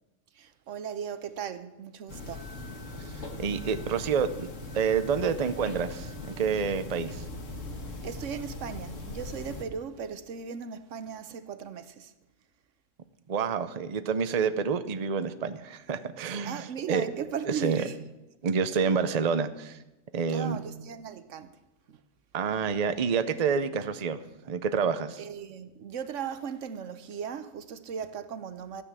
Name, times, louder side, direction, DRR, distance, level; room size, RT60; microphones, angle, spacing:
voice 1, 0.3-2.5 8.0-12.1 16.4-18.0 20.3-21.6 21.9-22.0 25.2-28.8, right 7 dB, 75° right, 1.2 m, -37 dB
sound 1, 2.1-9.6, left 2 dB, 75° left, 2.2 m, -40 dB
voice 2, 3.2-4.5 4.7-7.2 13.3-17.0 17.5-17.8 18.4-19.8 20.1-20.6 22.3-25.2, right 6 dB, 40° right, 0.7 m, -28 dB
14.0 x 9.9 x 7.4 m
omnidirectional pair, 1.3 m